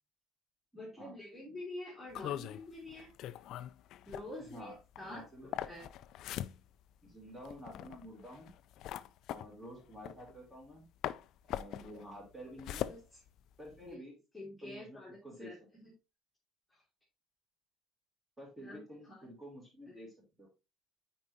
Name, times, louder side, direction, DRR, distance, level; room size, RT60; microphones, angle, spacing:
voice 1, 0.7-3.1 4.1-5.8 11.7-11.9 12.5-12.6 12.9-13.2 13.9-14.0 14.3-15.9 16.7-16.8 18.6-19.3 19.9-20.0, left 1 dB, 5° left, -6 dB, 2.1 m, -48 dB
sound 1, 2.1-10.8 11.0-13.9, left 12 dB, 60° left, 0.3 m, -42 dB
voice 2, 5.0-5.7 7.0-8.5 9.3-10.8 11.5-12.9 13.6-14.1 14.6-15.5 18.4-20.1 20.4-20.5, equal, 10° right, -2 dB, 2.8 m, -50 dB
8.7 x 4.7 x 2.7 m, 0.26 s
cardioid pair, 165°, 0 cm